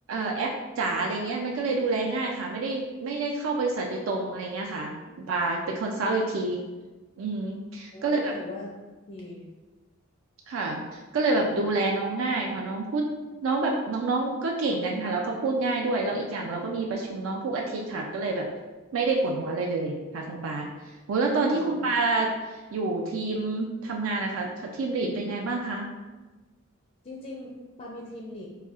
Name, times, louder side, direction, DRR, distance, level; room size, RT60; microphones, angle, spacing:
voice 1, 0.1-6.6 7.2-8.3 10.5-13.1 13.4-18.5 18.9-20.7 21.1-25.9, right 3 dB, 80° right, 0 dB, 0.4 m, -28 dB
voice 2, 7.9-8.7 9.1-9.5 21.5-21.8 27.0-28.5, left 2 dB, 35° left, -3 dB, 0.4 m, -40 dB
4.1 x 2.3 x 2.4 m, 1.2 s
head